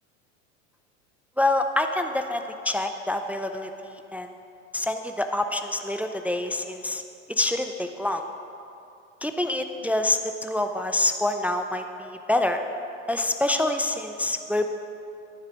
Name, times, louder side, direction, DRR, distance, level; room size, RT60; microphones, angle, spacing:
voice 1, 1.4-4.3 4.7-7.0 7.3-8.2 9.2-12.6 13.1-14.7, left 2 dB, 5° right, 6 dB, 0.4 m, -26 dB
10.5 x 10.5 x 4.9 m, 2.7 s
hypercardioid pair, 95°, 39 cm